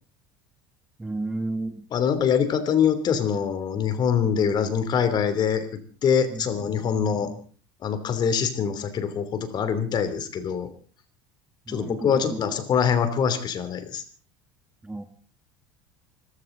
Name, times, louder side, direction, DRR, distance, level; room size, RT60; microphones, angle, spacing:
voice 1, 1.0-1.8 6.3-6.5 6.9-7.4 11.7-12.4 14.8-15.0, right 2 dB, 10° right, 8 dB, 1.6 m, -33 dB
voice 2, 1.9-5.6 6.0-7.3 7.8-10.7 11.7-14.0, left 7 dB, 40° left, 11 dB, 3.0 m, -24 dB
25.5 x 14.5 x 3.9 m, 0.40 s
supercardioid pair, 125°, 12 cm